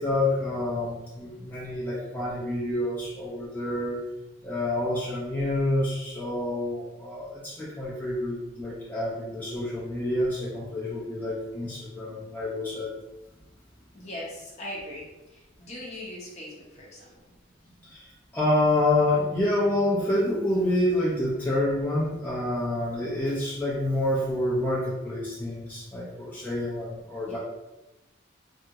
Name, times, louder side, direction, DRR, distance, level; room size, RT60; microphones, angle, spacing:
voice 1, 0.0-4.0 4.4-12.9 17.8-27.4, left 1 dB, 10° left, -8 dB, 0.5 m, -28 dB
voice 2, 13.9-17.1 27.3-27.4, left 1 dB, 35° left, -5 dB, 0.8 m, -40 dB
3.5 x 2.1 x 2.8 m, 0.98 s
head